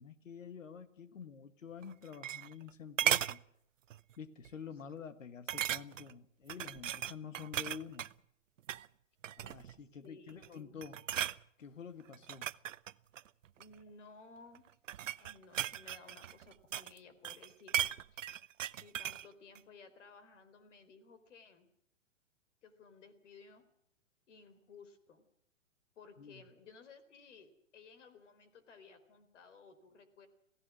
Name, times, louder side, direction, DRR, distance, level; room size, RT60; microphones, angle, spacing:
voice 1, 0.0-3.4 4.2-8.1 9.4-11.0 11.6-12.5 26.2-26.5, left 7 dB, 85° left, 12 dB, 1.7 m, -48 dB
sound 1, 1.8-2.7 3.0-3.4 3.9-4.1 4.4-4.5 5.5-6.1 6.5-8.1 8.6-8.9 9.2-9.8 10.3-10.5 10.8-11.4 12.1-13.7 14.5-17.0 17.2-19.3 19.6-19.7, right 10 dB, 75° right, 0.8 m, -36 dB
voice 2, 10.0-11.0 13.5-14.7 15.2-18.2 18.8-21.7 22.6-23.6 24.3-25.3 26.0-30.3, left 4 dB, 70° left, 11 dB, 4.1 m, -57 dB
27.5 x 16.5 x 6.2 m, 0.71 s
hypercardioid pair, 125°, 38 cm